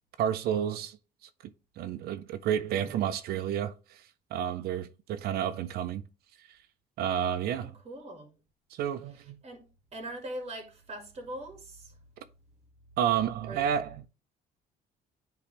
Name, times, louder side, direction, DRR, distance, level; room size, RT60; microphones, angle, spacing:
voice 1, 0.2-1.0 1.8-4.0 4.3-6.0 7.0-7.7 8.7-9.4 13.0-14.0, right 9 dB, 70° right, 0.5 m, -30 dB
voice 2, 2.6-3.0 7.6-8.3 9.4-9.6 9.9-12.0 13.5-13.7, right 1 dB, 40° right, 2.0 m, -42 dB
9.9 x 3.4 x 3.2 m
cardioid pair, 110°, 17 cm